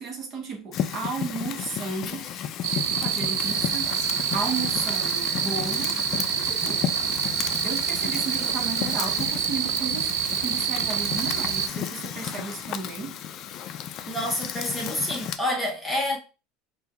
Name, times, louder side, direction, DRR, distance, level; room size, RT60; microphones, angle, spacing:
voice 1, 0.0-2.3 3.0-3.9 4.3-6.0 6.4-6.9 7.6-13.2, right 4 dB, 40° right, 0.9 m, -34 dB
Fire, 0.7-15.4, left 9 dB, 45° left, 0.3 m, -33 dB
sound 1, 2.6-11.7, right 9 dB, 70° right, 0.4 m, -27 dB
voice 2, 14.0-16.2, left 1 dB, 10° left, 0.7 m, -28 dB
5.0 x 2.2 x 2.3 m
supercardioid pair, 140°, 0 cm